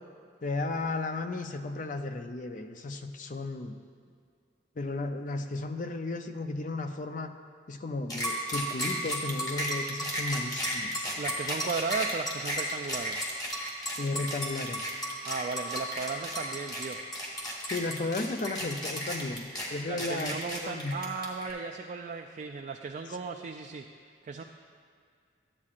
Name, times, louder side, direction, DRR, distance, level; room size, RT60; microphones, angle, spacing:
voice 1, 0.4-3.8 4.8-7.3 7.7-11.1 14.0-14.9 17.6-20.4 20.6-20.9, left 2 dB, 45° left, 7 dB, 0.5 m, -34 dB
sound 1, 8.1-21.5, equal, 20° left, 1.5 m, -33 dB
voice 2, 11.2-13.3 15.2-17.0 19.9-23.8 24.2-24.4, right 4 dB, 45° right, 3 dB, 0.3 m, -36 dB
13.0 x 8.4 x 2.5 m, 2.2 s
head